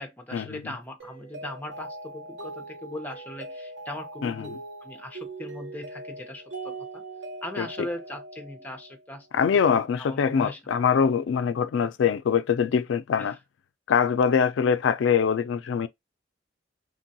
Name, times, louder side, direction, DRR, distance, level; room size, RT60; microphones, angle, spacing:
voice 1, 0.0-7.0 7.4-9.3 9.7-10.6 13.2-13.3, left 1 dB, 10° left, 0.7 m, -39 dB
Mallet percussion, 1.0-9.2, right 2 dB, 70° right, 1.0 m, -41 dB
voice 2, 9.3-13.4 13.9-15.9, left 7 dB, 85° left, 0.4 m, -23 dB
3.2 x 2.3 x 2.7 m
head